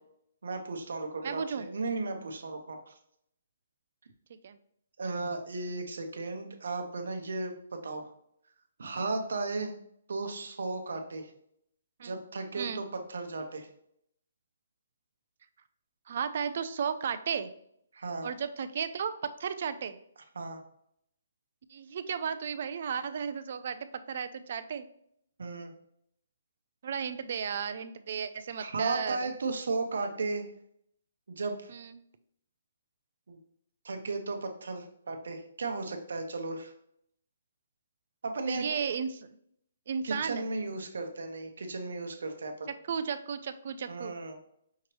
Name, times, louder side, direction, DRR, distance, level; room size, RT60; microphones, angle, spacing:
voice 1, 0.4-2.9 5.0-8.1 8.8-9.7 10.1-11.3 12.0-13.7 17.9-18.3 20.3-20.6 25.4-25.7 28.6-30.5 31.3-31.7 33.3-33.4 33.8-36.7 38.2-38.6 40.0-42.7 43.9-44.4, right 3 dB, 75° right, 5 dB, 0.9 m, -35 dB
voice 2, 1.2-1.7 4.4-4.6 12.0-12.2 12.6-12.8 16.1-17.5 18.2-20.0 21.7-24.9 26.8-29.3 31.7-32.0 38.5-39.3 39.9-40.5 42.9-44.1, right 7 dB, 50° right, 12 dB, 0.4 m, -34 dB
5.6 x 3.0 x 3.1 m, 0.71 s
hypercardioid pair, 160°, 0 cm